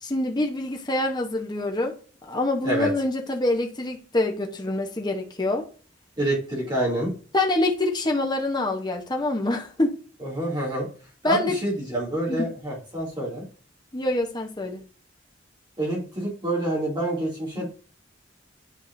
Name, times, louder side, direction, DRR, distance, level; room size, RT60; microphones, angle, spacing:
voice 1, 0.0-1.9 2.2-5.6 7.3-9.9 11.2-11.6 12.3-12.4 13.9-14.8 17.6-17.7, left 2 dB, 25° left, 0.9 m, -25 dB
voice 2, 6.2-7.1 10.2-10.9 11.2-13.4 15.8-17.7, right 1 dB, 25° right, 2.6 m, -27 dB
9.8 x 4.8 x 2.6 m
head